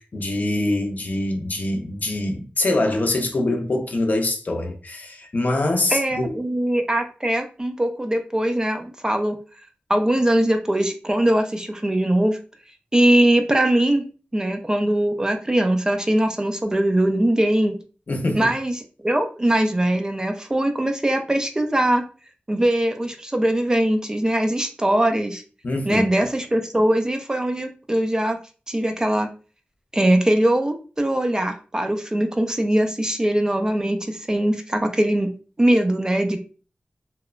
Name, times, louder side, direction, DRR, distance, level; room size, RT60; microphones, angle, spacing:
voice 1, 0.0-6.3 18.1-18.5 25.6-26.1, left 2 dB, 50° left, 0.5 m, -24 dB
voice 2, 5.9-9.4 9.9-12.4 12.9-14.0 14.3-17.7 18.3-18.7 19.0-22.0 22.5-25.4 25.8-28.4 28.7-29.3 29.9-35.3 35.6-36.4, right 1 dB, 20° right, 0.3 m, -21 dB
2.9 x 2.1 x 2.3 m
wide cardioid pair, 105°, 4 cm